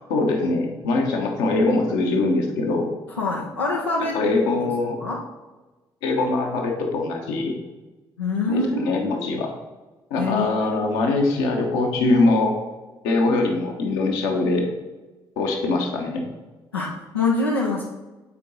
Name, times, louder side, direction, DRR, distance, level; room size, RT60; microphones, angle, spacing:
voice 1, 0.1-2.9 4.1-5.0 6.0-7.6 8.5-9.5 10.1-12.6 13.0-14.7 15.4-16.2, left 2 dB, 70° left, 2 dB, 1.1 m, -22 dB
voice 2, 3.1-4.7 5.0-5.2 8.2-9.3 10.2-10.8 16.7-17.8, left 3 dB, 85° left, -4 dB, 0.6 m, -25 dB
8.5 x 4.6 x 4.0 m, 1.2 s
figure-of-eight pair, 40°, 13 cm